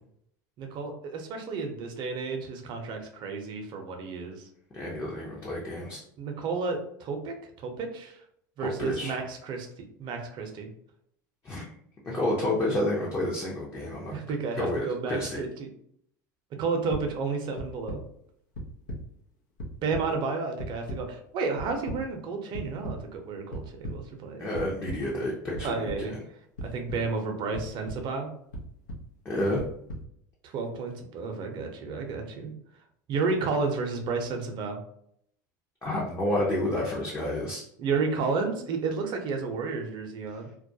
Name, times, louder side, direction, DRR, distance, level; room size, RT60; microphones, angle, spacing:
voice 1, 0.6-4.5 6.2-8.2 8.6-9.7 10.0-10.7 14.1-15.7 16.6-18.0 19.8-24.5 25.6-26.1 26.6-28.3 30.4-32.5 33.1-34.8 37.8-40.5, right 4 dB, 50° right, 4 dB, 0.6 m, -31 dB
voice 2, 4.7-6.0 8.6-9.1 11.4-11.6 12.0-14.2 14.6-15.4 24.4-25.8 26.1-26.2 29.2-29.6 35.8-37.6, left 1 dB, 25° left, -5 dB, 0.6 m, -30 dB
sound 1, 16.9-17.0 17.6-18.0 18.5-19.0 19.3-20.0 20.6-21.0 21.6-22.0 22.5-22.9 23.5-23.9 24.5-25.0 25.5-26.0 26.6-27.0 27.5-28.0 28.5-29.0 29.6-30.0, right 1 dB, 85° left, 0.7 m, -35 dB
2.3 x 2.1 x 2.7 m, 0.71 s
hypercardioid pair, 90°, 10 cm